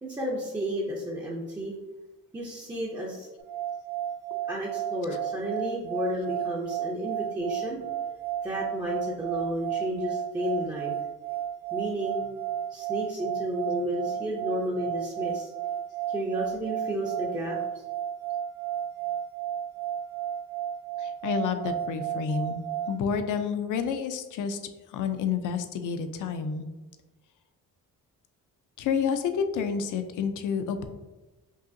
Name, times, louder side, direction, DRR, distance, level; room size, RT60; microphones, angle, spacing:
voice 1, 0.0-1.7 2.3-3.3 4.5-7.8 8.4-11.0 11.7-12.3 12.7-15.5 16.1-17.8, equal, 10° right, -5 dB, 0.4 m, -32 dB
sound 1, 3.4-23.0, right 10 dB, 80° right, 0.6 m, -33 dB
voice 2, 21.0-22.6 22.9-24.6 24.9-26.7 28.8-30.8, left 6 dB, 60° left, 8 dB, 0.5 m, -29 dB
5.4 x 2.7 x 2.6 m, 1.1 s
cardioid pair, 165°, 35 cm